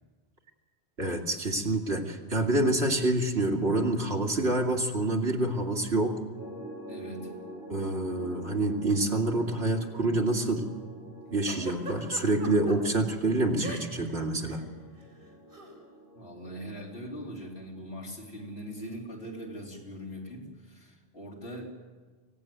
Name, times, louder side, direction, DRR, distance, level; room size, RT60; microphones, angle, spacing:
voice 1, 1.0-6.2 7.7-10.7 11.3-14.6, right 2 dB, 80° right, 1 dB, 2.8 m, -27 dB
sound 1, 6.3-20.3, equal, 15° right, 8.1 m, -47 dB
voice 2, 6.9-7.3 16.1-21.8, equal, 75° left, -1 dB, 4.0 m, -41 dB
Giggle, 11.5-12.8 13.6-14.1 14.4-14.6 15.5-15.7, right 2 dB, 55° right, 4.4 m, -40 dB
25.0 x 17.0 x 9.4 m, 1.4 s
omnidirectional pair, 1.1 m